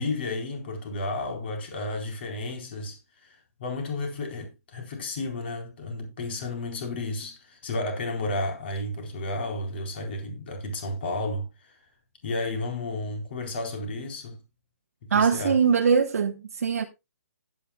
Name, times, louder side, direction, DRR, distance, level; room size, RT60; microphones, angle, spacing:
voice 1, 0.0-11.7 12.2-14.4 15.1-15.5, left 2 dB, 40° left, 4.1 m, -32 dB
voice 2, 15.1-16.8, right 6 dB, 65° right, 1.2 m, -22 dB
15.5 x 8.9 x 2.3 m
hypercardioid pair, 170°, 9 cm